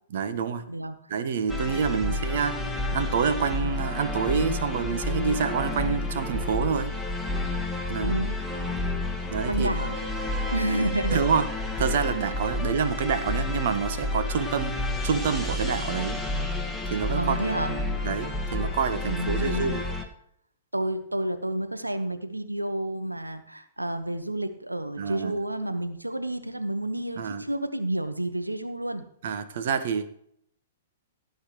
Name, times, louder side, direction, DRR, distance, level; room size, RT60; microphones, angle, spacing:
voice 1, 0.1-0.6 1.1-2.6 2.9-6.9 7.9-8.2 9.3-9.9 11.1-11.4 11.8-14.8 15.0-16.2 16.9-17.4 18.0-19.9 25.0-25.3 27.2-27.4 29.2-30.1, right 6 dB, 50° right, 10 dB, 1.2 m, -27 dB
sound 1, 1.5-20.0, left 2 dB, ahead, 1.7 m, -30 dB
voice 2, 1.6-2.3 8.0-8.3 9.5-10.1 10.5-11.2 17.1-17.7 19.0-19.8 20.7-29.0, right 1 dB, 85° right, 9 dB, 1.3 m, -30 dB
17.5 x 9.3 x 3.1 m, 0.68 s
figure-of-eight pair, 110°, 0 cm